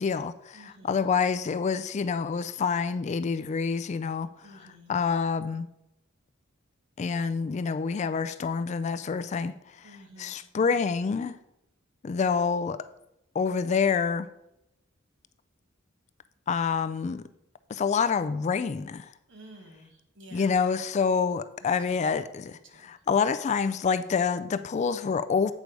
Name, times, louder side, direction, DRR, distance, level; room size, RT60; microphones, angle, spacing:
voice 1, 0.0-5.7 7.0-11.4 12.0-12.8 13.4-14.3 16.5-17.2 17.7-19.1 20.3-25.5, left 5 dB, 35° left, 0.3 m, -27 dB
voice 2, 0.5-1.0 4.4-5.0 9.8-10.4 19.3-20.6 21.6-22.0 22.4-22.9, right 1 dB, 65° right, 1.3 m, -51 dB
8.2 x 5.2 x 4.7 m
head